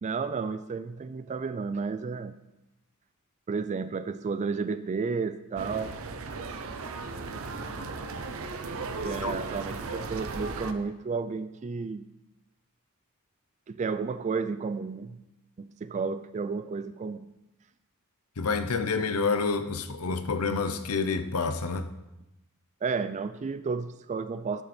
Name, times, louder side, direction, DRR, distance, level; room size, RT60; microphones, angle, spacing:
voice 1, 0.0-2.3 3.5-6.0 9.0-12.1 13.7-15.2 15.6-17.3 22.8-24.6, right 5 dB, 35° right, 0.3 m, -32 dB
sound 1, 5.6-10.7, right 3 dB, 65° right, 0.7 m, -36 dB
voice 2, 18.4-21.9, left 4 dB, 80° left, 0.7 m, -28 dB
11.0 x 6.7 x 4.3 m
head